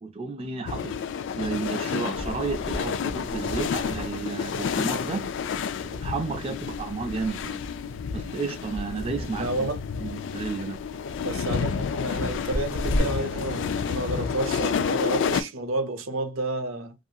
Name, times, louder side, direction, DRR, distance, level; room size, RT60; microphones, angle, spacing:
voice 1, 0.0-0.9 1.3-5.3 5.8-7.6 8.1-9.7 10.0-10.8, right 4 dB, 30° right, 0.4 m, -32 dB
sound 1, 0.7-15.4, left 6 dB, 60° left, 0.3 m, -30 dB
sound 2, 2.1-13.0, equal, 80° left, 0.7 m, -38 dB
voice 2, 9.4-9.8 11.2-16.9, right 2 dB, 80° right, 0.7 m, -30 dB
2.7 x 2.5 x 2.3 m
head